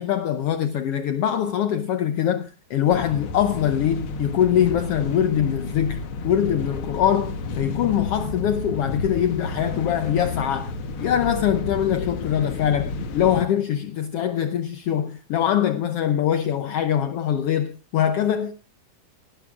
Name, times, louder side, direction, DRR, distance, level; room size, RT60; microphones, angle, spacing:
voice 1, 0.0-10.7 11.0-18.5, left 10 dB, 85° left, 1.3 m, -23 dB
sound 1, 2.9-13.4, left 3 dB, 55° left, 1.6 m, -31 dB
19.5 x 12.0 x 2.4 m
omnidirectional pair, 3.6 m